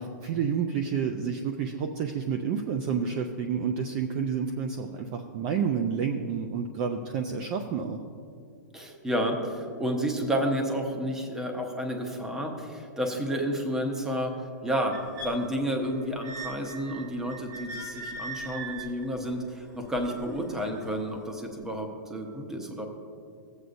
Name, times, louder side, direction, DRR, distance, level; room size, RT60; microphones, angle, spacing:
voice 1, 0.0-8.0, right 6 dB, 25° right, 5 dB, 0.4 m, -29 dB
voice 2, 8.7-14.3 14.6-15.0 15.2-22.9, equal, 5° right, 3 dB, 0.7 m, -30 dB
sound 1, 14.9-21.0 21.7-21.8, right 2 dB, 70° right, 1.4 m, -41 dB
15.0 x 8.0 x 2.5 m, 2.4 s
hypercardioid pair, 165°, 10 cm